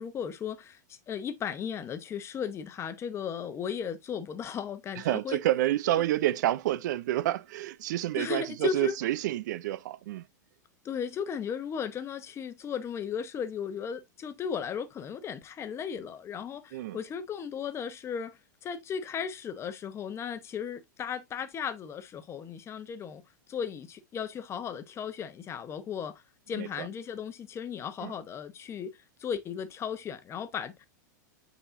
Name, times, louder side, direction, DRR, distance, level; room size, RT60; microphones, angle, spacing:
voice 1, 0.0-5.4 8.2-8.9 10.8-23.2 23.5-26.2 26.5-30.9, left 7 dB, 25° left, 1.0 m, -36 dB
voice 2, 5.0-10.3 16.7-17.0 26.5-26.9 28.0-28.1, right 14 dB, 70° right, 0.5 m, -29 dB
8.7 x 4.1 x 2.6 m
hypercardioid pair, 120°, 10 cm